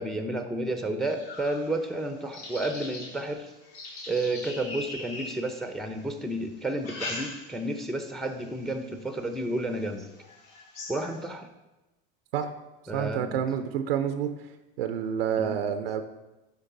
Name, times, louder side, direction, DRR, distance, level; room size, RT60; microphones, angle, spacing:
voice 1, 0.0-3.5 4.1-10.1 10.9-11.5 12.9-13.4 15.4-15.5, right 1 dB, ahead, 7 dB, 0.7 m, -31 dB
sound 1, 1.0-6.0 6.6-7.8 8.2-8.6 9.2-9.3 9.7-9.8 10.2-11.3, left 2 dB, 60° left, 2.2 m, -41 dB
voice 2, 12.9-14.3 14.8-16.0, right 8 dB, 90° right, 9 dB, 0.6 m, -28 dB
11.0 x 3.9 x 3.9 m, 1.0 s
hypercardioid pair, 90°, 29 cm